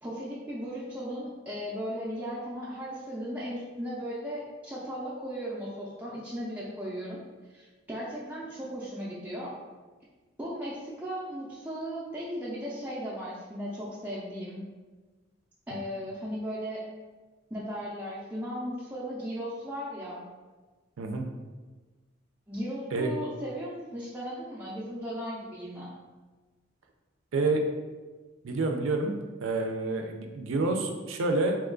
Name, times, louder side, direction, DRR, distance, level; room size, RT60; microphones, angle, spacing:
voice 1, 0.0-7.2 7.5-9.5 10.4-14.6 15.7-16.9 17.5-20.2 22.5-25.9, equal, 10° right, -7 dB, 0.4 m, -36 dB
voice 2, 27.3-27.6 28.4-29.2 29.4-31.5, right 2 dB, 85° right, 4 dB, 0.4 m, -28 dB
3.0 x 2.3 x 3.7 m, 1.3 s
head